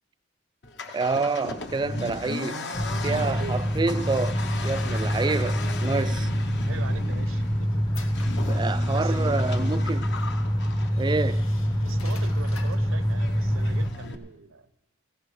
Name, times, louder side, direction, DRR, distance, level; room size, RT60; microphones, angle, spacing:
Accelerating revving vroom, 0.6-14.1, left 2 dB, 60° left, 0.9 m, -37 dB
voice 1, 0.9-2.6 3.0-6.3 8.5-10.1 11.0-11.4, right 3 dB, 20° right, 0.3 m, -28 dB
sound 1, 2.7-13.9, equal, 20° left, 0.6 m, -26 dB
voice 2, 3.1-3.6 6.6-7.8 8.9-9.4 11.8-14.7, right 4 dB, 80° right, 0.7 m, -41 dB
sound 2, 7.3-9.3 10.2-10.3 10.9-13.0, left 4 dB, 90° left, 1.1 m, -47 dB
16.0 x 16.0 x 3.2 m
head